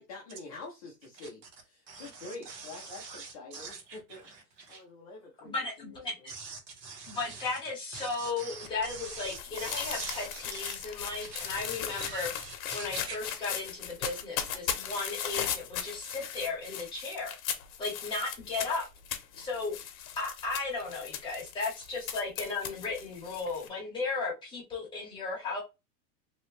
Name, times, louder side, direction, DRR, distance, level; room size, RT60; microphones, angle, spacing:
voice 1, 0.0-4.2 4.7-6.3, left 3 dB, 25° left, 0.4 m, -46 dB
voice 2, 1.9-4.8 6.3-7.6 7.9-10.8 11.2-13.2, right 4 dB, 75° right, 1.7 m, -44 dB
voice 3, 5.4-6.3 7.1-12.3 12.7-17.4 17.8-18.9 19.4-19.7 20.2-25.6, left 3 dB, 10° left, 0.9 m, -35 dB
sound 1, 8.6-23.7, left 9 dB, 55° left, 0.9 m, -38 dB
3.0 x 2.8 x 3.0 m
supercardioid pair, 175°, 49 cm